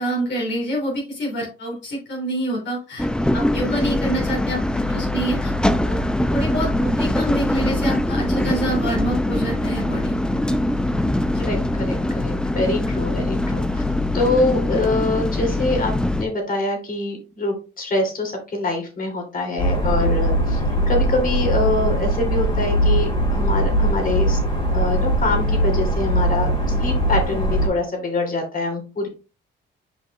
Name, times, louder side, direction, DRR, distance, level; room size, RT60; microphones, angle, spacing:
voice 1, 0.0-3.1 3.3-5.5 5.8-6.0 6.3-10.1, right 1 dB, 65° left, -2 dB, 3.0 m, -26 dB
sound 1, 3.0-16.2, left 1 dB, 5° left, 0.6 m, -22 dB
voice 2, 11.4-13.8 14.1-24.4 24.7-26.5 26.8-29.1, left 2 dB, 45° left, 2 dB, 3.0 m, -25 dB
sound 2, 19.6-27.7, right 1 dB, 25° left, 2.6 m, -20 dB
7.8 x 5.2 x 2.4 m, 0.32 s
cardioid pair, 90°, 20 cm